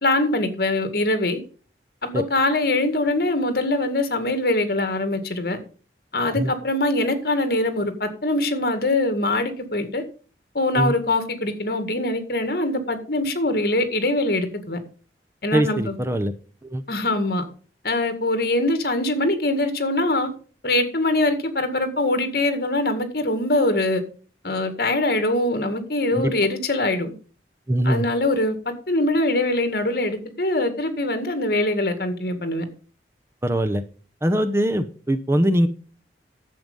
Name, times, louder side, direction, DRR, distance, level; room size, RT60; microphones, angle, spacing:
voice 1, 0.0-1.4 2.0-5.6 6.1-10.0 10.5-14.8 15.4-15.9 16.9-17.4 17.8-20.3 20.6-24.0 24.4-27.1 27.8-32.6, left 2 dB, 55° left, 2.0 m, -23 dB
voice 2, 15.5-16.3 16.6-16.8 26.1-26.3 27.7-28.0 33.4-33.8 34.2-35.7, right 1 dB, 15° right, 0.8 m, -22 dB
11.0 x 7.8 x 5.4 m
head